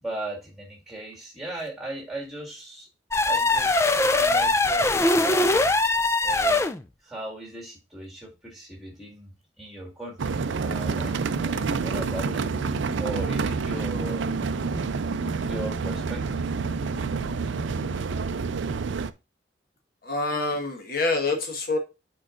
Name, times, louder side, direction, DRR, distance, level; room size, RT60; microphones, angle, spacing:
voice 1, 0.0-2.9 3.2-5.5 6.2-6.6 7.0-10.4 10.6-14.3 15.4-16.5, right 1 dB, ahead, 2.0 m, -38 dB
sound 1, 3.1-6.8, left 2 dB, 15° left, 0.4 m, -21 dB
sound 2, 10.2-19.1, right 4 dB, 80° right, 0.5 m, -28 dB
sound 3, 10.6-18.1, right 1 dB, 70° left, 1.5 m, -42 dB
voice 2, 20.0-21.8, left 3 dB, 50° left, 1.6 m, -26 dB
8.5 x 4.7 x 2.5 m
head